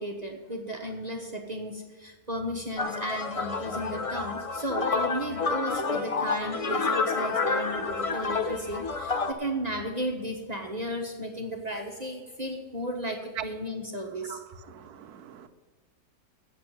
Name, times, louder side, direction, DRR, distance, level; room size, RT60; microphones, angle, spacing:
voice 1, 0.0-14.4, equal, 30° right, 1.0 m, -34 dB
sound 1, 2.8-9.3, left 4 dB, 65° left, 0.3 m, -29 dB
voice 2, 14.3-15.5, right 10 dB, 65° right, 1.2 m, -40 dB
8.8 x 7.5 x 8.8 m
omnidirectional pair, 1.8 m